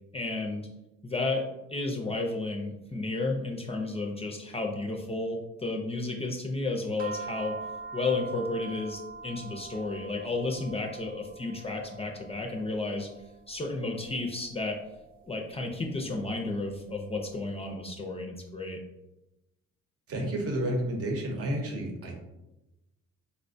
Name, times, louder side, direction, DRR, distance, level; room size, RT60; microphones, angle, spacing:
voice 1, 0.1-0.7 1.0-1.4 1.7-7.6 7.9-13.1 13.5-14.8 15.3-18.8, left 2 dB, 20° left, 1 dB, 0.4 m, -32 dB
sound 1, 7.0-17.5, right 4 dB, 30° right, 0.5 m, -45 dB
voice 2, 20.1-22.2, right 1 dB, 50° right, 2 dB, 0.9 m, -31 dB
4.2 x 2.1 x 2.6 m, 0.96 s
cardioid pair, 90°, 30 cm